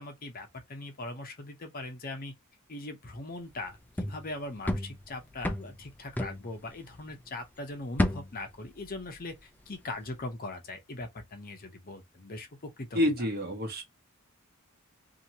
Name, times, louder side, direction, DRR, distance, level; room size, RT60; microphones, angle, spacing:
voice 1, 0.0-2.3 2.7-13.3, left 2 dB, 40° left, 0.8 m, -40 dB
sound 1, 3.5-7.3 7.6-9.6 9.9-10.2, left 1 dB, 10° left, 0.4 m, -34 dB
voice 2, 12.9-13.8, left 1 dB, 45° right, 1.1 m, -28 dB
2.8 x 2.8 x 2.8 m
head